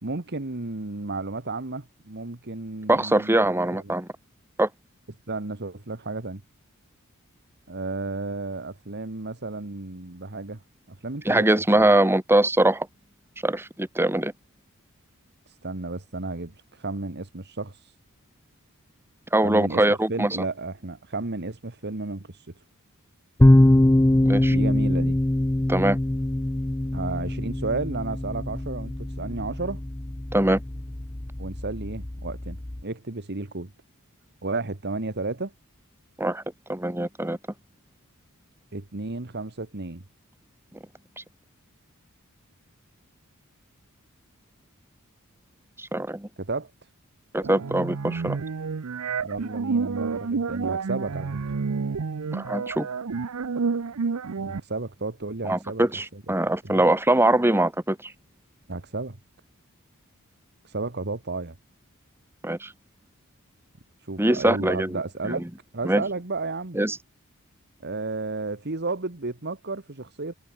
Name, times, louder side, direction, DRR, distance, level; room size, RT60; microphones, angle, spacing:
voice 1, 0.0-4.0 5.3-6.4 7.7-10.6 10.9-11.4 11.7-11.9 15.5-18.0 19.4-22.5 24.5-25.2 26.9-29.8 31.4-33.7 34.4-35.5 38.7-40.0 46.4-46.7 49.2-51.4 54.4-55.8 56.1-56.2 56.6-56.8 58.7-59.2 60.6-61.5 64.0-65.4 65.7-66.8 67.8-70.3, right 3 dB, 50° right, 1.6 m, -33 dB
voice 2, 2.9-4.1 4.6-4.7 11.2-12.9 13.4-14.3 19.3-20.4 24.2-24.6 25.7-26.0 30.3-30.6 36.2-36.4 36.7-37.4 45.8-46.3 47.3-48.4 52.3-52.9 55.4-58.1 62.4-62.7 64.2-65.0 65.2-65.4 65.8-66.0 66.7-67.0, right 1 dB, 10° right, 1.4 m, -22 dB
sound 1, 23.4-32.8, left 1 dB, 10° left, 0.5 m, -23 dB
sound 2, 47.4-54.6, right 5 dB, 75° right, 0.6 m, -29 dB
head